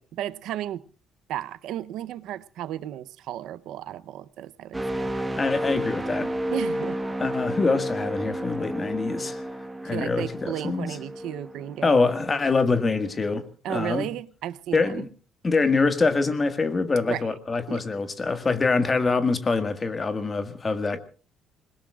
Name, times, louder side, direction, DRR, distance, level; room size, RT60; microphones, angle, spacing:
voice 1, 0.1-0.9 1.3-5.1 6.5-7.0 9.8-12.0 13.6-15.1 17.1-17.4 17.7-17.8, right 12 dB, 70° right, 0.7 m, -34 dB
sound 1, 4.7-12.6 13.0-13.3, right 1 dB, 10° right, 1.4 m, -32 dB
voice 2, 5.4-6.3 7.2-9.5 9.8-11.0 11.8-14.1 14.7-15.1 15.4-21.0, left 3 dB, 20° left, 1.7 m, -24 dB
27.5 x 21.0 x 2.4 m
cardioid pair, 165°, 0 cm